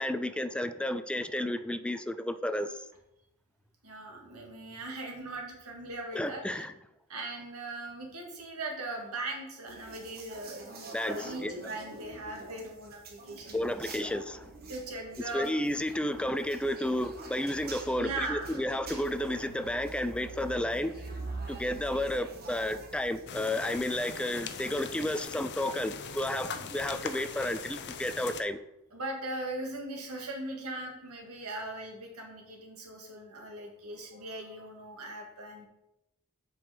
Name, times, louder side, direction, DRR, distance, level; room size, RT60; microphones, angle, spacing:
voice 1, 0.0-2.9 6.1-6.7 10.9-11.5 13.5-14.5 15.3-21.0 21.5-28.6, left 1 dB, 5° left, 0.3 m, -32 dB
voice 2, 3.8-6.6 7.1-10.7 11.0-13.7 14.0-14.1 14.7-15.5 18.0-18.6 28.9-35.7, right 2 dB, 70° right, 1.9 m, -39 dB
sound 1, 9.7-25.2, right 3 dB, 45° right, 1.3 m, -45 dB
sound 2, 23.3-28.4, left 6 dB, 50° left, 0.6 m, -41 dB
7.7 x 5.3 x 4.9 m
head